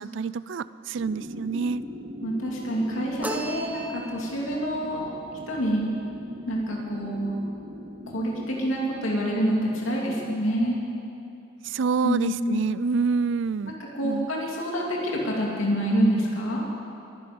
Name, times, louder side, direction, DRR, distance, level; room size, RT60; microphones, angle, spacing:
voice 1, 0.0-1.8 11.6-13.8 14.0-14.3, right 5 dB, 65° right, 16 dB, 0.4 m, -27 dB
sound 1, 1.0-9.7, equal, 90° right, 4.0 m, -40 dB
voice 2, 2.2-5.1 5.5-5.9 6.5-7.4 8.1-10.8 12.0-12.5 13.6-16.6, equal, 80° left, -3 dB, 2.7 m, -27 dB
sound 2, 3.2-4.5, right 2 dB, 10° right, 1.0 m, -35 dB
22.5 x 11.0 x 5.3 m, 2.7 s
head